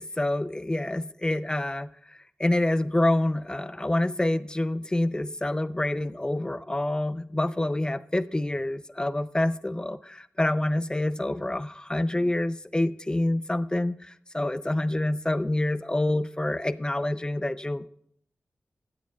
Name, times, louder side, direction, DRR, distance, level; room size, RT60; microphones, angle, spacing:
voice 1, 0.0-1.9 2.4-10.0 10.4-13.9 14.3-17.9, left 1 dB, 20° left, 14 dB, 0.4 m, -27 dB
16.0 x 12.5 x 2.3 m, 0.66 s
wide cardioid pair, 80°, 4 cm